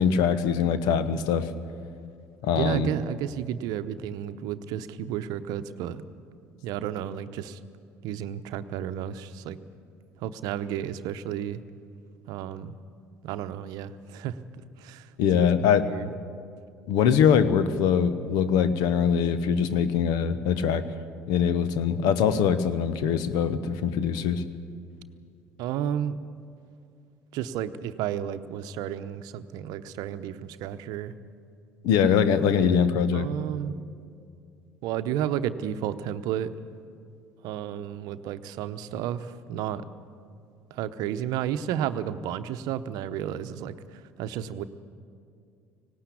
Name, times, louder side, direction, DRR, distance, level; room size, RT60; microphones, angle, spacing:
voice 1, 0.0-1.5 2.4-2.9 15.2-15.9 16.9-20.8 21.3-24.4 31.8-33.3, left 7 dB, 65° left, 13 dB, 1.0 m, -23 dB
voice 2, 2.6-6.0 6.6-7.6 8.0-9.6 10.2-11.6 12.3-12.8 13.2-14.4 14.8-16.1 25.6-26.2 27.3-31.1 32.6-32.8 33.1-33.7 34.8-36.5 37.4-39.9 40.7-44.6, right 10 dB, 65° right, 11 dB, 0.8 m, -32 dB
19.0 x 17.5 x 8.5 m, 2.4 s
hypercardioid pair, 60°, 7 cm